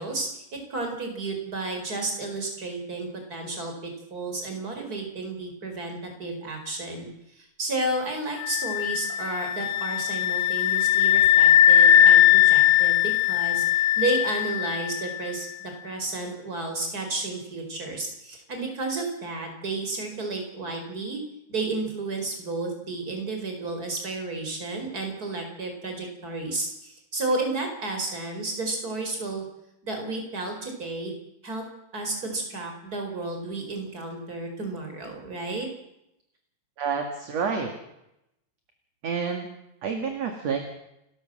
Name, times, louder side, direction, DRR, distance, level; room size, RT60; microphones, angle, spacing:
voice 1, 0.0-21.2 21.5-29.4 29.8-31.1 31.4-31.6 31.9-35.7, right 2 dB, 25° right, 4 dB, 5.0 m, -32 dB
sound 1, 8.4-15.2, left 11 dB, 80° left, 2.7 m, -20 dB
voice 2, 36.8-37.7 39.0-39.5 39.8-40.7, right 6 dB, 55° right, 4 dB, 3.0 m, -28 dB
29.0 x 13.0 x 7.6 m, 0.84 s
omnidirectional pair, 3.9 m